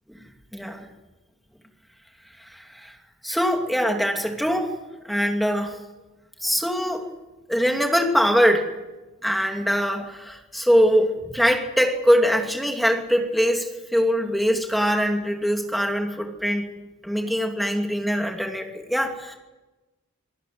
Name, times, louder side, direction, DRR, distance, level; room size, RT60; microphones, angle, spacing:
voice 1, 0.5-0.9 2.4-2.9 3.2-4.7 5.0-5.8 6.4-7.0 7.5-8.7 9.2-16.7 17.0-19.3, equal, ahead, 3 dB, 2.6 m, -22 dB
26.0 x 18.0 x 7.8 m, 1.1 s
head